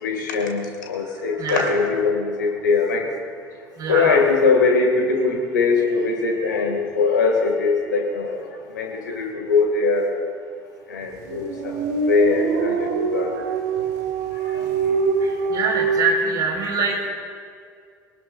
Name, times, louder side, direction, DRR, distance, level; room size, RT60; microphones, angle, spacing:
voice 1, 0.0-3.1 3.9-8.4 8.7-10.1 10.9-11.8 12.1-13.3 14.5-14.7, left 4 dB, 75° left, 2 dB, 2.4 m, -21 dB
voice 2, 1.4-1.7 3.8-4.2 9.1-9.3 15.2-17.1, right 4 dB, 40° right, -1 dB, 4.9 m, -24 dB
sound 1, 11.2-16.0, right 5 dB, 65° right, 1.4 m, -24 dB
23.0 x 18.5 x 2.6 m, 2.2 s
figure-of-eight pair, 60°, 10 cm